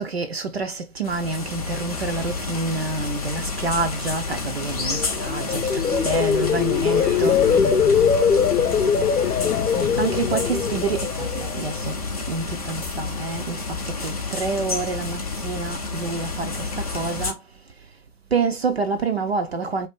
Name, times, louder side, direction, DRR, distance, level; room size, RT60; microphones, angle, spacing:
voice 1, 0.0-7.4 9.8-18.0 18.3-19.9, right 4 dB, 45° right, 0.4 m, -28 dB
sound 1, 1.0-17.3, left 3 dB, 25° left, 0.4 m, -30 dB
sound 2, 4.8-12.0 12.4-12.8, left 7 dB, 80° left, 0.6 m, -22 dB
voice 2, 5.6-9.4, right 3 dB, 85° right, 1.1 m, -36 dB
2.7 x 2.4 x 3.5 m
figure-of-eight pair, 130°, 46 cm